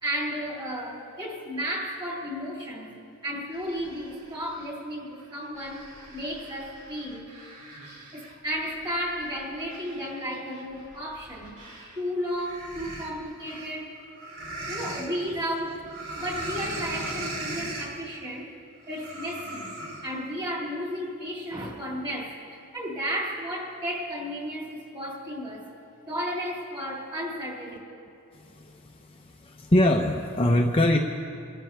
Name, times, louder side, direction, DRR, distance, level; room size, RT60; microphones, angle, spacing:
voice 1, 0.0-7.3 8.1-11.6 11.9-13.9 14.7-15.8 16.2-18.5 18.9-19.8 20.0-22.3 22.7-25.7 26.1-27.8, equal, 20° right, -3 dB, 3.3 m, -33 dB
sound 1, 3.5-4.7 5.2-12.0 12.3-15.1 15.9-18.0 18.9-20.1, right 1 dB, 75° right, 3.3 m, -39 dB
voice 2, 28.3-31.0, left 1 dB, 25° left, 1 dB, 0.8 m, -24 dB
27.5 x 13.5 x 3.4 m, 2.5 s
head